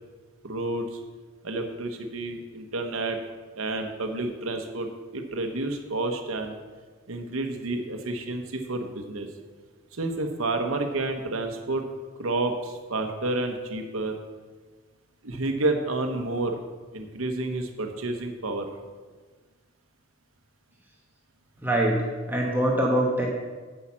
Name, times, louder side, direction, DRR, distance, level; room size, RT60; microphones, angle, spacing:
voice 1, 0.4-1.0 1.4-3.2 3.6-6.5 7.1-9.3 9.9-11.8 12.2-14.2 15.2-16.6 16.9-18.7, right 2 dB, 80° right, 5 dB, 1.0 m, -30 dB
voice 2, 21.6-23.3, right 1 dB, 10° right, -2 dB, 1.0 m, -24 dB
8.6 x 5.7 x 7.2 m, 1.4 s
head